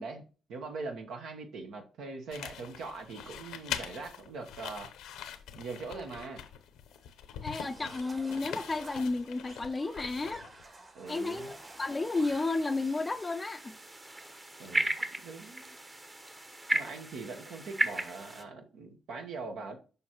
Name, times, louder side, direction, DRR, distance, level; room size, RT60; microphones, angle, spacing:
voice 1, 0.0-4.9 5.5-6.4 10.9-11.5 14.6-15.7 16.7-19.8, right 3 dB, 80° right, 1.1 m, -42 dB
sound 1, 2.3-10.7, left 9 dB, 85° left, 0.7 m, -43 dB
voice 2, 7.4-10.4 11.1-13.7, left 3 dB, 25° left, 0.4 m, -32 dB
sound 2, 7.6-13.4, right 2 dB, 45° right, 2.1 m, -51 dB
sound 3, 11.1-18.4, right 1 dB, 25° right, 1.1 m, -36 dB
6.9 x 5.2 x 3.0 m
supercardioid pair, 60°, 0 cm